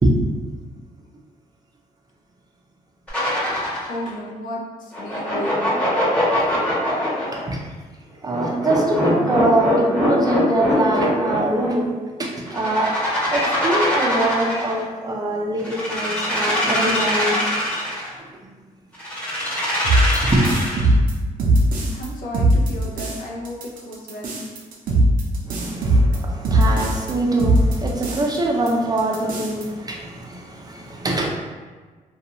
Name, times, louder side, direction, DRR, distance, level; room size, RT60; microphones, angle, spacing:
sound 1, 3.1-4.0 4.9-7.4 8.3-11.7 12.4-14.8 15.6-18.1 19.0-20.9, left 1 dB, 10° left, 1.0 m, -23 dB
voice 1, 3.5-5.8 21.9-24.3 24.9-25.0, left 1 dB, 70° left, -2 dB, 0.6 m, -33 dB
voice 2, 8.2-11.9 12.2-12.9 13.3-17.4 20.2-20.5 25.4-31.3, right 2 dB, 25° right, -1 dB, 0.5 m, -23 dB
sound 2, 19.8-22.1 22.3-23.2 23.4-27.1 27.4-28.4 28.7-28.8 29.0-29.6, right 1 dB, 75° right, 0.6 m, -19 dB
2.5 x 2.3 x 2.8 m, 1.4 s
cardioid pair, 110°, 14 cm